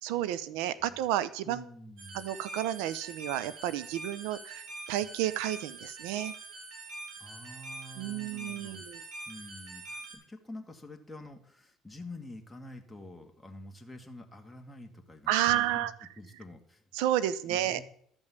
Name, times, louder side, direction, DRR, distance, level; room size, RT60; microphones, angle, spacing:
voice 1, 0.0-1.6 2.1-6.3 8.0-9.0 15.3-15.9 16.9-17.8, right 12 dB, 90° right, 16 dB, 0.7 m, -31 dB
voice 2, 1.4-2.2 7.2-8.8 9.3-15.9 16.2-16.8 17.4-17.8, left 1 dB, 5° left, 3 dB, 1.8 m, -47 dB
sound 1, 2.0-10.1, right 2 dB, 70° right, 4.9 m, -44 dB
12.5 x 5.4 x 8.3 m, 0.64 s
cardioid pair, 105°, 0 cm